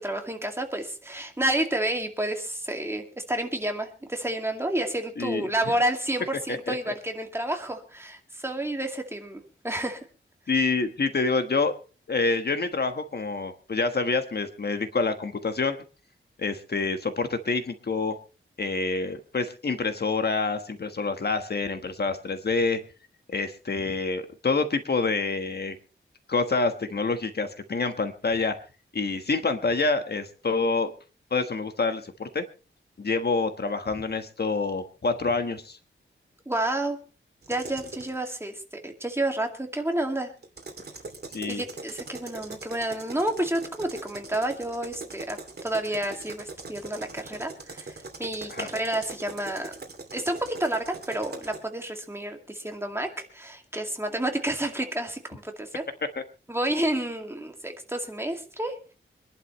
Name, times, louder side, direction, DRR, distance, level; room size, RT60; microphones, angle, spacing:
voice 1, 0.0-10.0 36.5-37.0 37.5-40.3 41.5-49.7 50.1-55.8 56.5-58.9, right 1 dB, 10° right, 4 dB, 2.3 m, -30 dB
voice 2, 5.2-5.5 6.5-6.9 10.5-11.7 12.1-15.8 16.4-18.1 18.6-22.8 23.3-25.8 26.3-28.5 28.9-30.9 31.3-32.4 33.0-35.8 41.3-41.6 48.5-48.7, left 4 dB, 50° left, 7 dB, 1.4 m, -27 dB
sound 1, 37.4-38.2 40.4-51.6, right 3 dB, 50° right, 2.7 m, -41 dB
25.0 x 11.5 x 3.2 m, 0.35 s
wide cardioid pair, 135°, 21 cm